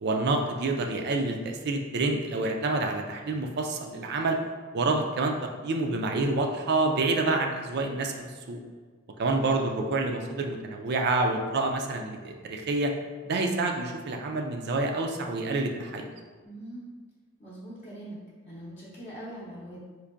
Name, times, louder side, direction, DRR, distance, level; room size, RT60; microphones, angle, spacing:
voice 1, 0.0-4.4 4.7-5.3 5.6-8.6 9.2-12.9 13.2-16.1, right 2 dB, 55° right, 3 dB, 0.4 m, -28 dB
voice 2, 16.4-16.9 17.4-18.2 18.4-19.8, right 1 dB, 35° left, -10 dB, 0.7 m, -42 dB
4.5 x 2.5 x 2.5 m, 1.4 s
head